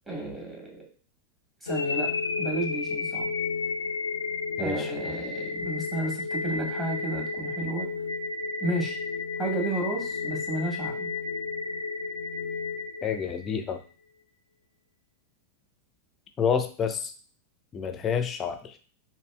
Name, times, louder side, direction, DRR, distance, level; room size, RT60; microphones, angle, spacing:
voice 1, 0.1-0.9 1.6-3.3 4.6-7.9 8.6-9.0 9.4-11.1, right 2 dB, 10° right, -2 dB, 1.5 m, -32 dB
sound 1, 1.7-13.7, left 4 dB, 75° left, 0.4 m, -32 dB
voice 2, 4.6-4.9 13.0-13.8 16.4-17.1 17.7-18.8, left 7 dB, 25° left, 7 dB, 0.6 m, -28 dB
5.0 x 2.6 x 2.3 m, 0.39 s
figure-of-eight pair, 90°, 0 cm